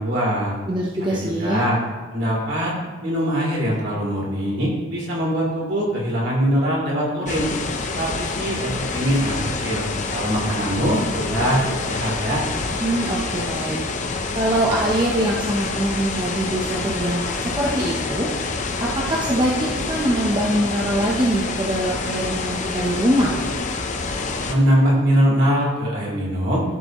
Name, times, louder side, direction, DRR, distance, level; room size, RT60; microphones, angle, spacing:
voice 1, 0.0-0.5 1.0-1.8 2.1-2.7 3.0-7.5 7.9-12.4 24.4-26.6, equal, 60° right, -4 dB, 3.2 m, -22 dB
voice 2, 0.7-1.6 12.8-13.8 14.3-18.3 18.8-23.4, right 1 dB, 20° right, -4 dB, 0.9 m, -23 dB
sound 1, 7.3-24.5, left 3 dB, 35° left, 0.7 m, -27 dB
14.0 x 6.8 x 3.1 m, 1.3 s
head